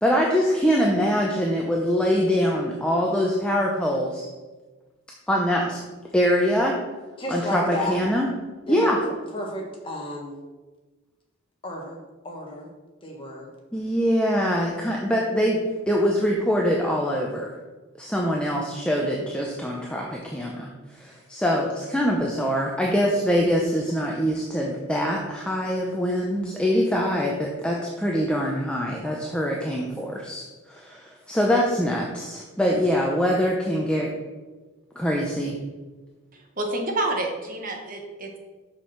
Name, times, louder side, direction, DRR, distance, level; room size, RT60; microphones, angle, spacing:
voice 1, 0.0-4.3 5.3-5.8 6.1-6.8 7.3-8.3 8.7-9.0 13.7-17.5 18.0-34.1 35.0-35.6, equal, 5° left, -2 dB, 0.7 m, -24 dB
voice 2, 7.2-8.0 8.7-8.9 9.3-10.4 11.6-12.7 13.0-13.5, left 1 dB, 25° left, 0 dB, 1.5 m, -32 dB
voice 3, 36.3-38.4, right 2 dB, 40° right, 2 dB, 1.3 m, -29 dB
6.4 x 6.0 x 5.8 m, 1.3 s
head